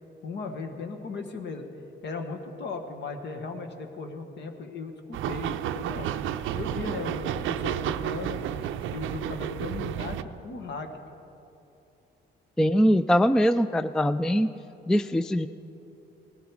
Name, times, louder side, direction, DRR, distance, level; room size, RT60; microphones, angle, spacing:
voice 1, 0.2-1.6 2.0-6.1 6.5-8.4 8.9-10.9, left 4 dB, 65° left, 5 dB, 1.4 m, -37 dB
sound 1, 5.1-10.2, right 10 dB, 80° right, 0.5 m, -31 dB
voice 2, 12.6-14.5 14.9-15.5, equal, 5° left, 13 dB, 0.3 m, -22 dB
18.0 x 12.5 x 4.8 m, 2.9 s
cardioid pair, 90°, 20 cm